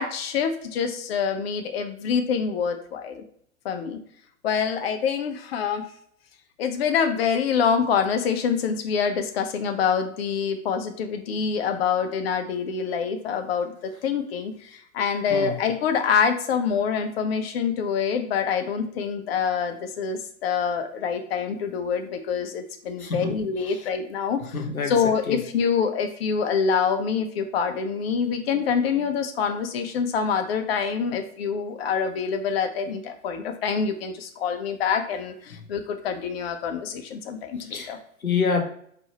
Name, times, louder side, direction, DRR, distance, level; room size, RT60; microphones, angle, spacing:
voice 1, 0.0-3.2 3.6-4.0 4.4-5.9 6.6-24.4 24.9-38.0, left 6 dB, 45° left, 6 dB, 0.8 m, -26 dB
voice 2, 23.0-23.3 23.7-23.8 24.5-24.9 25.3-25.4 37.7-38.6, left 5 dB, 85° left, 5 dB, 1.0 m, -27 dB
4.5 x 2.8 x 4.2 m, 0.65 s
figure-of-eight pair, 110°, 42 cm